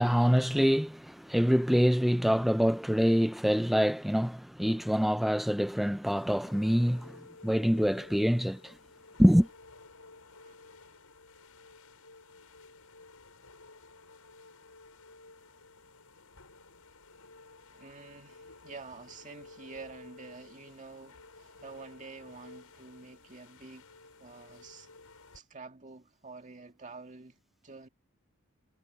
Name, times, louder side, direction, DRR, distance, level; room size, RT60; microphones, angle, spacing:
voice 1, 0.0-8.7 9.2-9.5, equal, ahead, 0.4 m, -25 dB
sound 1, 6.1-25.4, left 3 dB, 85° left, 5.7 m, -54 dB
voice 2, 17.7-23.9 24.2-24.9 25.3-27.9, right 4 dB, 35° right, 2.2 m, -48 dB
head